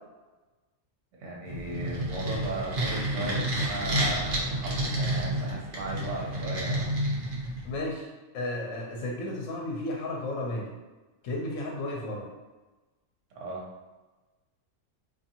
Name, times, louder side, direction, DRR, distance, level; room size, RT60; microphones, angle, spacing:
voice 1, 1.2-6.9 13.3-13.7, right 2 dB, 75° right, -3 dB, 1.0 m, -36 dB
sound 1, 1.5-7.8, right 1 dB, 50° right, 0.7 m, -30 dB
voice 2, 7.6-8.1 8.3-10.7 11.2-12.3, left 1 dB, 80° left, -2 dB, 0.9 m, -33 dB
2.5 x 2.5 x 2.7 m, 1.2 s
omnidirectional pair, 1.3 m